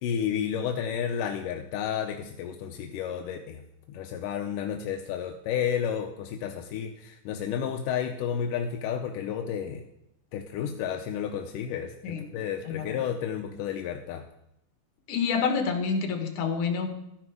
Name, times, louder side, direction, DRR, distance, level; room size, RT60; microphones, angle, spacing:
voice 1, 0.0-3.6 3.9-9.8 10.3-14.2, left 8 dB, 85° left, 4 dB, 2.4 m, -31 dB
voice 2, 12.7-13.0 15.1-16.9, left 5 dB, 70° left, 5 dB, 3.0 m, -28 dB
13.5 x 10.0 x 4.8 m, 0.82 s
omnidirectional pair, 3.7 m